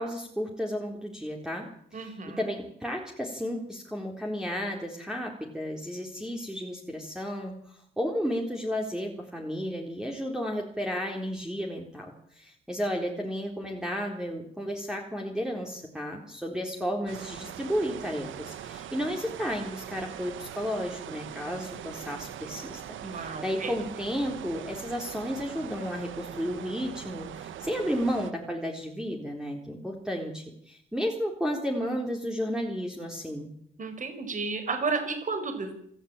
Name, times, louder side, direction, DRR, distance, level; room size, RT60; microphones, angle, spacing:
voice 1, 0.0-22.8 23.1-33.5, equal, 5° right, 1 dB, 4.0 m, -33 dB
voice 2, 1.9-2.4 23.0-23.7 33.8-35.8, right 4 dB, 40° right, 8 dB, 5.2 m, -32 dB
sound 1, 17.1-28.3, right 10 dB, 75° right, 1.6 m, -41 dB
26.5 x 12.5 x 9.0 m, 0.68 s
cardioid pair, 90°, 20 cm